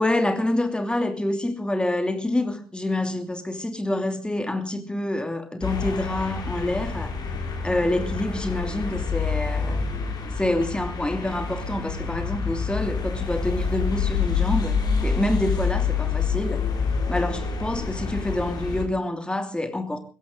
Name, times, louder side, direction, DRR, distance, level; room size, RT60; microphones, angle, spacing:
voice 1, 0.0-7.1 7.6-9.8 10.4-16.7 17.1-20.0, left 1 dB, 10° left, 2.7 m, -27 dB
sound 1, 5.6-18.8, left 5 dB, 40° left, 5.2 m, -27 dB
21.5 x 16.5 x 3.8 m
figure-of-eight pair, 50°, 11 cm